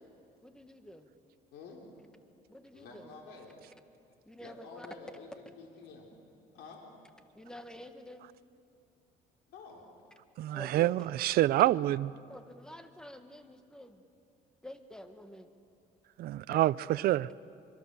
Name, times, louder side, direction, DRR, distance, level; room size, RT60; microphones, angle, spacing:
voice 1, 0.4-1.1 2.5-3.1 4.3-4.9 7.3-8.3 10.5-11.1 12.3-14.0 14.6-15.5 16.5-16.7, equal, 5° left, 7 dB, 1.6 m, -48 dB
voice 2, 2.7-3.6 4.4-6.1 6.5-6.8 9.5-9.8, left 4 dB, 80° left, 0 dB, 3.8 m, -49 dB
voice 3, 10.4-12.1 16.2-16.7 17.0-17.3, right 15 dB, 65° right, 17 dB, 0.5 m, -26 dB
25.5 x 24.0 x 6.9 m, 2.4 s
cardioid pair, 110°, 17 cm